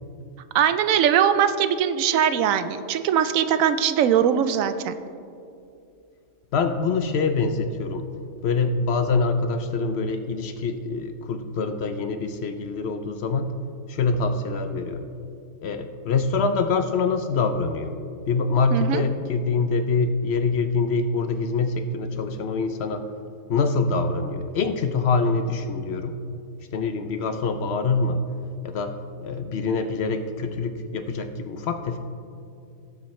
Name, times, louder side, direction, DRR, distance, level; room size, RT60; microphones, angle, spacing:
voice 1, 0.5-5.0 18.7-19.0, right 9 dB, 85° right, 11 dB, 1.0 m, -21 dB
voice 2, 6.5-8.1 8.4-13.4 13.9-15.1 15.6-18.0 18.3-23.0 23.5-26.1 26.7-28.2 28.6-29.0 29.2-32.0, left 4 dB, 60° left, 8 dB, 0.8 m, -25 dB
17.0 x 7.3 x 3.1 m, 2.5 s
omnidirectional pair, 1.4 m